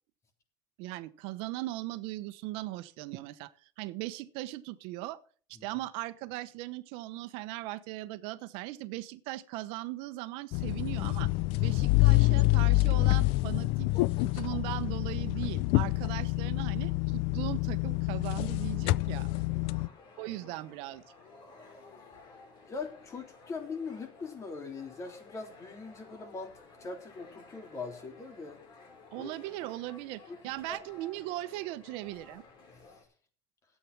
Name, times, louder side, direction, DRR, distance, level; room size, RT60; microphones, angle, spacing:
voice 1, 0.8-3.5 3.8-5.2 5.5-11.3 11.6-13.9 14.2-19.3 20.2-21.0 29.1-32.4, right 17 dB, 80° right, 12 dB, 1.0 m, -39 dB
sound 1, 10.5-19.9, left 21 dB, 75° left, 0.5 m, -27 dB
sound 2, 18.3-33.0, left 3 dB, 50° left, 5.0 m, -55 dB
voice 2, 19.5-19.9 22.7-26.5 26.8-28.6 29.1-29.3 30.3-30.4 30.7-30.8, left 4 dB, 35° left, 5 dB, 3.4 m, -41 dB
13.0 x 8.6 x 6.1 m, 0.43 s
cardioid pair, 125°, 9 cm